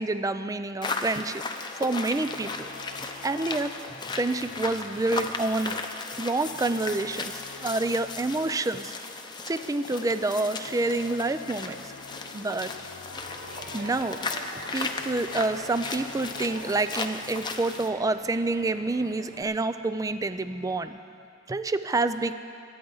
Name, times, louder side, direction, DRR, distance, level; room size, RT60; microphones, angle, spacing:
voice 1, 0.0-1.4 1.8-2.7 3.2-5.8 6.2-8.9 9.5-11.8 12.3-12.7 13.7-14.2 14.7-21.0 21.5-22.3, right 2 dB, 15° right, 11 dB, 0.4 m, -28 dB
sound 1, 0.8-17.9, left 3 dB, 25° left, 0.7 m, -36 dB
sound 2, 1.0-8.8 9.4-17.4, left 5 dB, 90° left, 0.5 m, -47 dB
Crowd, 13.1-19.4, right 3 dB, 45° right, 0.9 m, -46 dB
22.5 x 9.6 x 3.9 m, 2.5 s
head